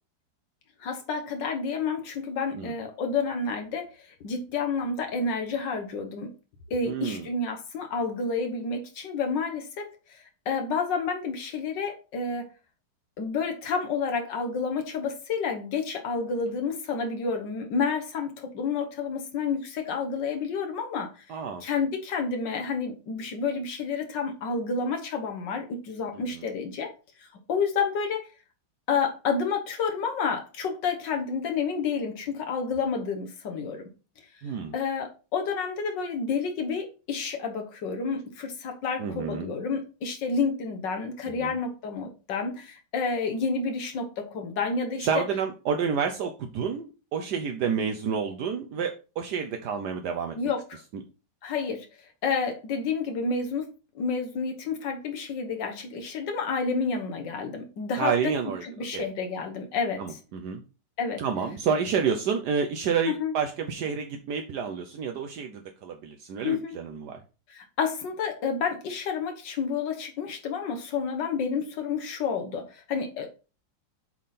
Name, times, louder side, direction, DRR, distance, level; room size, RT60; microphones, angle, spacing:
voice 1, 0.8-6.3 6.7-12.5 13.2-26.9 27.2-28.3 28.9-33.9 34.7-45.2 50.3-50.8 51.4-51.9 52.2-53.7 53.9-58.3 58.6-60.2 61.0-61.2 63.1-63.3 66.4-66.7 67.5-73.3, left 5 dB, 75° left, 1.7 m, -30 dB
voice 2, 6.8-7.3 21.3-21.6 26.3-26.4 34.4-34.7 39.0-39.5 41.4-41.5 45.0-50.4 58.0-58.6 58.9-59.0 60.0-60.6 61.2-67.2, right 6 dB, 70° right, 1.2 m, -29 dB
7.5 x 3.6 x 4.1 m
omnidirectional pair, 2.0 m